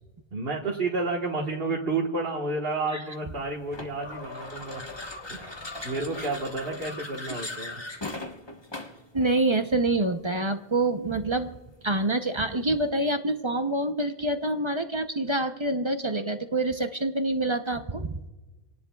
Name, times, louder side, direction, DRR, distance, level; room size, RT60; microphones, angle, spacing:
voice 1, 0.3-4.8 5.3-7.9, right 3 dB, 55° right, -2 dB, 1.7 m, -31 dB
sound 1, 3.7-9.1, left 2 dB, 25° left, 1.3 m, -38 dB
voice 2, 9.1-11.5 11.8-18.2, right 2 dB, 30° right, 7 dB, 0.7 m, -26 dB
27.5 x 18.5 x 2.3 m, 1.1 s
omnidirectional pair, 1.2 m